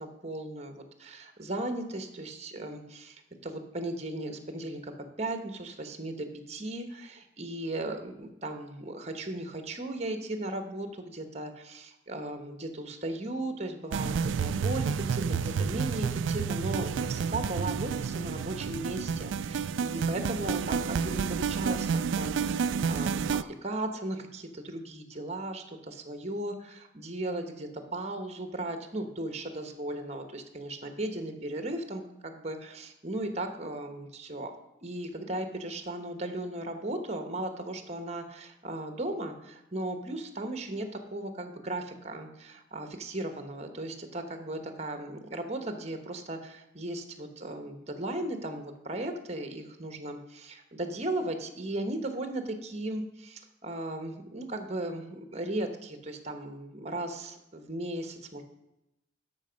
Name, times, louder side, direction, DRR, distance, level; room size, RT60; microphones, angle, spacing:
voice 1, 0.0-4.9 5.2-34.5 34.8-58.4, right 1 dB, 35° right, 7 dB, 1.2 m, -36 dB
sound 1, 13.9-23.4, right 6 dB, 85° right, 0.4 m, -30 dB
12.5 x 5.9 x 5.2 m, 0.89 s
head